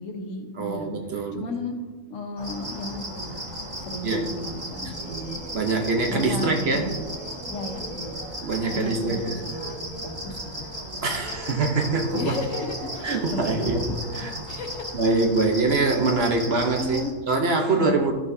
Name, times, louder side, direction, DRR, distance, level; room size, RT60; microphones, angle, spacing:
voice 1, 0.0-0.9 1.3-1.7 2.1-3.4 3.8-5.4 6.1-7.0 7.5-8.2 8.7-10.7 12.1-13.9 14.2-15.0 16.8-17.1 17.8-18.1, left 2 dB, 70° left, 3 dB, 1.4 m, -34 dB
voice 2, 0.6-1.4 4.0-4.3 5.5-6.9 8.4-9.4 11.0-12.3 13.0-13.8 14.2-14.3 14.9-17.0 17.3-18.1, right 3 dB, 55° right, 3 dB, 1.0 m, -24 dB
sound 1, 2.4-17.1, equal, 25° right, 1.7 m, -36 dB
Singing, 4.9-14.3, right 2 dB, 85° right, 1.9 m, -42 dB
13.5 x 6.2 x 2.7 m, 1.4 s
omnidirectional pair, 1.4 m